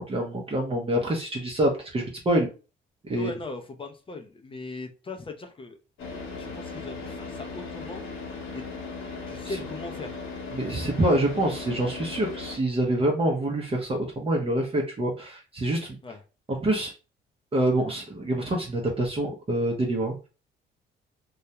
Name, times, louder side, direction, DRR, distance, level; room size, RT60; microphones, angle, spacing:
voice 1, 0.0-2.5 3.0-3.3 9.4-9.6 10.5-16.0 16.5-16.9 17.5-20.1, right 1 dB, 30° right, 0 dB, 0.6 m, -26 dB
voice 2, 3.1-5.8 6.4-8.0 8.5-8.6 9.3-10.2 16.0-16.2, left 2 dB, 25° left, 5 dB, 0.5 m, -39 dB
Car / Idling, 6.0-12.6, left 4 dB, 80° left, 0.8 m, -37 dB
2.3 x 2.1 x 2.8 m, 0.33 s
cardioid pair, 90°, 20 cm